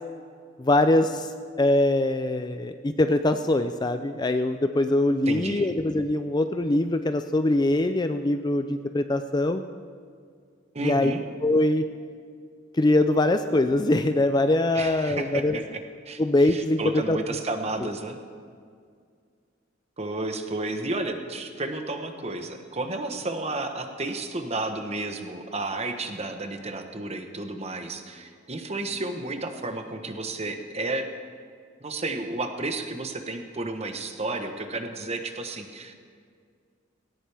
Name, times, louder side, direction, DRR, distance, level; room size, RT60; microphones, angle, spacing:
voice 1, 0.6-1.3 1.6-9.6 10.8-11.1 11.4-11.8 12.7-15.6 16.2-16.8 17.1-17.2, left 1 dB, 20° left, 9 dB, 0.4 m, -23 dB
voice 2, 5.3-5.7 10.7-11.2 14.7-15.8 16.1-18.2 20.0-31.0 31.8-36.0, right 2 dB, 35° right, 6 dB, 1.1 m, -32 dB
18.5 x 17.5 x 3.5 m, 2.1 s
head